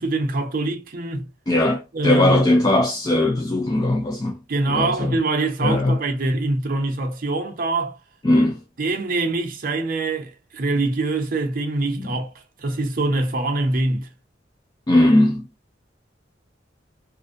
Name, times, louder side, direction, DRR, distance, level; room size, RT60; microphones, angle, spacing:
voice 1, 0.0-1.3 1.9-2.5 4.5-8.0 8.8-12.3 12.6-14.1, right 2 dB, 50° right, 0.6 m, -24 dB
voice 2, 1.5-4.4 4.7-5.1 5.6-6.0 8.2-8.6 12.0-12.1 14.9-15.4, left 1 dB, 20° left, 0.3 m, -19 dB
2.5 x 2.1 x 2.5 m
head